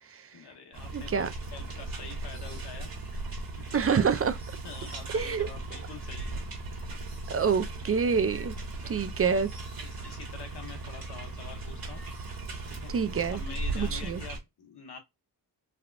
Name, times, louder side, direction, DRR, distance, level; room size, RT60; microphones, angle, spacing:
voice 1, 0.3-2.9 3.7-4.1 4.6-6.4 7.5-7.6 8.8-9.4 9.8-12.0 12.7-12.9 13.3-15.0, left 5 dB, 70° left, 1.2 m, -46 dB
sound 1, 0.7-14.4, right 2 dB, 55° right, 1.3 m, -37 dB
voice 2, 0.9-1.3 3.7-4.4 5.1-5.5 7.3-8.5 8.9-9.5 12.9-13.4 13.8-14.2, right 6 dB, 35° right, 0.5 m, -26 dB
3.4 x 2.3 x 2.4 m
cardioid pair, 70°, 41 cm